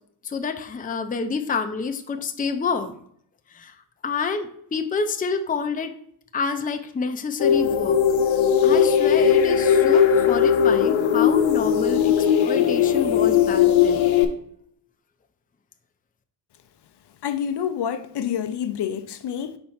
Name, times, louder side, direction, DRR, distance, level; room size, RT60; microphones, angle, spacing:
voice 1, 0.2-3.0 3.5-3.7 4.0-5.9 6.3-8.0 8.6-14.1, left 5 dB, 20° left, 0.5 m, -28 dB
sound 1, 7.4-14.2, left 8 dB, 80° left, 0.9 m, -18 dB
voice 2, 17.2-19.6, left 8 dB, 60° left, 0.6 m, -28 dB
4.4 x 4.3 x 5.6 m
cardioid pair, 105°, 47 cm